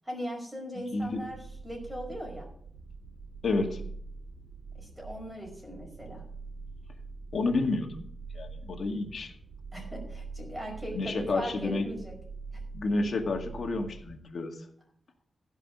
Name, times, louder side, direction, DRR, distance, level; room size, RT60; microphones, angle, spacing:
voice 1, 0.0-2.5 4.7-6.2 9.7-12.1, equal, 10° right, -1 dB, 5.1 m, -39 dB
voice 2, 0.9-1.2 3.4-3.8 7.3-8.1 8.3-9.3 10.9-11.9 12.7-14.6, left 3 dB, 60° left, 3 dB, 2.1 m, -30 dB
sound 1, 1.0-14.2, right 4 dB, 65° right, 2.5 m, -44 dB
16.0 x 5.7 x 6.7 m, 0.63 s
wide cardioid pair, 145°, 0 cm